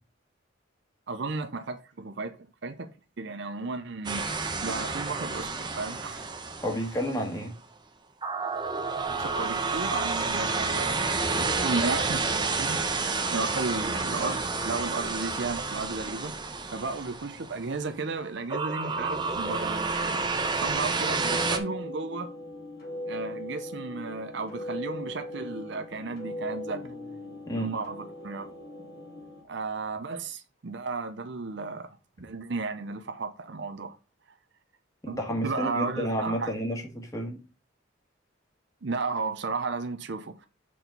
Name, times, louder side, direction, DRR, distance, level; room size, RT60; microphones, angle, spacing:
voice 1, 1.1-6.4 9.1-12.9 13.3-16.3 16.7-20.2 20.5-22.3 23.1-26.9 27.5-28.5 29.5-34.0 35.1-36.5 38.8-40.5, right 3 dB, 60° right, 0.6 m, -34 dB
sound 1, 4.0-7.4 8.2-17.8 18.5-21.6, right 4 dB, 20° right, 0.7 m, -30 dB
voice 2, 6.6-7.5 27.5-27.7 35.0-37.4, equal, 15° left, 1.6 m, -31 dB
sound 2, 20.6-29.4, left 1 dB, 50° left, 3.6 m, -39 dB
6.2 x 4.3 x 5.3 m
head